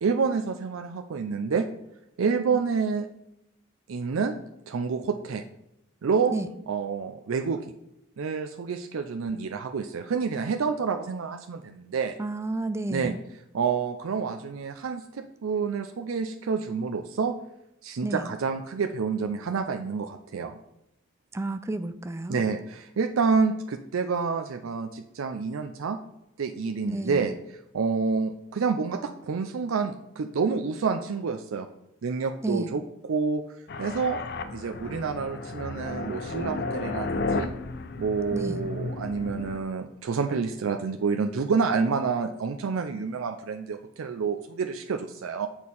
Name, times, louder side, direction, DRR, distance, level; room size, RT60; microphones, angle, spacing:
voice 1, 0.0-1.7 2.2-3.1 3.9-4.3 4.7-5.4 6.0-6.4 6.7-7.7 8.2-12.2 12.9-13.1 13.5-17.3 17.8-20.6 22.3-26.0 26.4-27.3 27.7-31.7 32.0-32.8 33.1-33.4 33.8-34.2 34.5-37.5 38.0-45.5, right 5 dB, 85° right, 5 dB, 0.4 m, -28 dB
voice 2, 12.2-13.2 18.0-18.3 21.3-22.4 26.8-27.2 32.4-32.7 38.3-38.7, right 2 dB, 15° right, 11 dB, 0.3 m, -31 dB
sound 1, 33.7-39.6, left 3 dB, 50° left, 0.5 m, -33 dB
6.5 x 4.4 x 5.4 m, 0.83 s
head